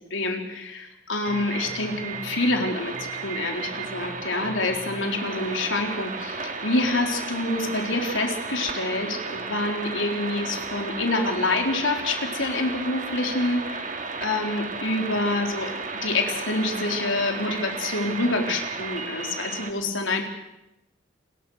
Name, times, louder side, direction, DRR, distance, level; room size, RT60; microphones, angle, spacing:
voice 1, 0.1-2.9 3.2-15.7 16.0-20.3, left 2 dB, 80° left, 3 dB, 4.0 m, -27 dB
sound 1, 1.2-19.7, right 4 dB, 40° right, 2.2 m, -34 dB
29.5 x 21.5 x 6.5 m, 0.87 s
head